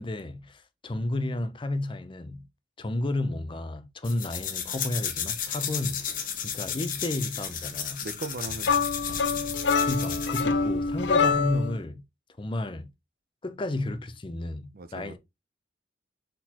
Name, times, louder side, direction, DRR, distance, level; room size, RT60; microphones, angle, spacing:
voice 1, 0.0-2.5 2.8-6.1 6.4-8.1 9.9-12.0 12.4-12.9 13.4-15.2, left 2 dB, 30° left, 0.6 m, -32 dB
sound 1, 4.0-10.5, left 8 dB, 50° left, 0.9 m, -33 dB
voice 2, 8.0-8.9 14.7-15.2, right 2 dB, 55° right, 0.6 m, -38 dB
sound 2, 8.6-11.8, left 5 dB, 80° left, 0.6 m, -25 dB
4.4 x 3.8 x 2.9 m
head